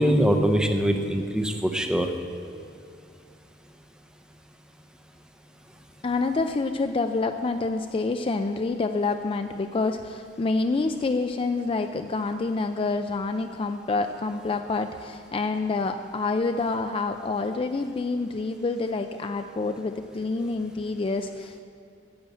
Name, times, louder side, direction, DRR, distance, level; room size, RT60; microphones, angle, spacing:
voice 1, 0.0-2.1, equal, 5° right, 5 dB, 0.6 m, -22 dB
voice 2, 6.0-21.6, left 3 dB, 30° left, 7 dB, 0.3 m, -27 dB
10.5 x 7.5 x 7.6 m, 2.4 s
head